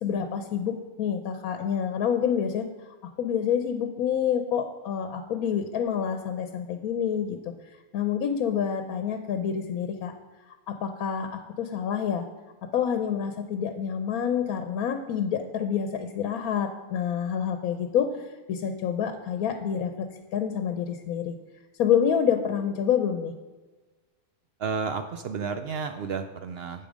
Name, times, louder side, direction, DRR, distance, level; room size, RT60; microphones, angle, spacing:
voice 1, 0.0-2.7 3.2-7.4 7.9-10.1 10.7-12.2 12.7-21.4 21.8-23.3, left 8 dB, 75° left, 7 dB, 1.1 m, -27 dB
voice 2, 24.6-26.9, right 5 dB, 75° right, 9 dB, 0.5 m, -32 dB
8.5 x 7.5 x 5.0 m, 1.3 s
omnidirectional pair, 1.6 m